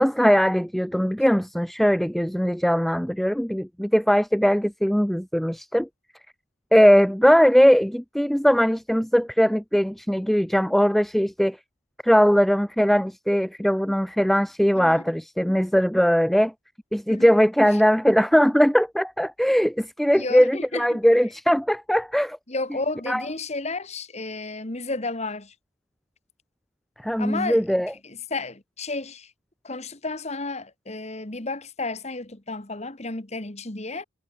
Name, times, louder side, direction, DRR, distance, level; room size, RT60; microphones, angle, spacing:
voice 1, 0.0-5.9 6.7-11.6 12.0-16.5 16.9-22.4 23.1-23.2 27.0-27.9, equal, ahead, 0.3 m, -20 dB
voice 2, 14.7-15.0 17.1-17.3 17.7-17.8 20.1-21.0 22.5-25.5 27.2-29.3 29.6-34.0, left 3 dB, 30° left, 1.6 m, -32 dB
head